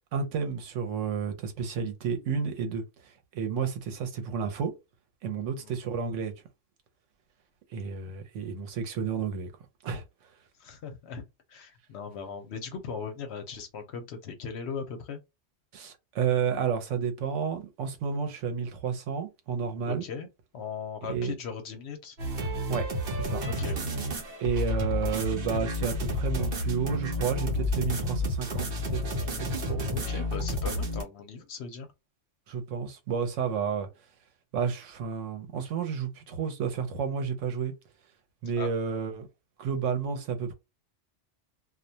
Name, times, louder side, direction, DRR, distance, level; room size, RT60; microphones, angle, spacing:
voice 1, 0.1-4.7 5.2-6.3 7.7-9.5 9.8-10.0 15.7-20.0 21.0-21.3 22.7-23.4 24.4-29.0 29.3-29.8 32.5-33.9 34.5-37.7 38.4-39.3 39.6-40.5, right 6 dB, 85° right, 1.0 m, -31 dB
voice 2, 10.6-11.2 11.5-15.2 19.9-20.3 20.5-22.2 23.4-23.8 29.9-31.9 38.6-38.7, left 6 dB, 65° left, 0.8 m, -38 dB
sound 1, 22.2-31.0, left 1 dB, 55° right, 0.9 m, -30 dB
2.3 x 2.1 x 2.7 m
omnidirectional pair, 1.2 m